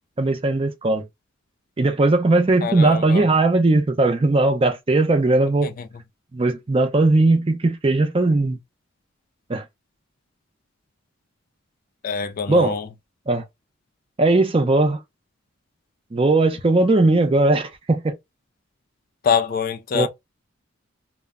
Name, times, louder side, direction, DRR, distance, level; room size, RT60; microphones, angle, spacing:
voice 1, 0.2-1.1 1.8-5.7 6.3-8.6 9.5-9.6 12.5-12.8 13.3-13.4 14.2-15.0 16.1-18.1 19.9-20.1, right 2 dB, 30° right, 0.5 m, -18 dB
voice 2, 2.6-3.3 5.6-5.9 12.0-12.9 19.2-20.1, left 7 dB, 45° left, 0.3 m, -24 dB
2.1 x 2.1 x 3.5 m
head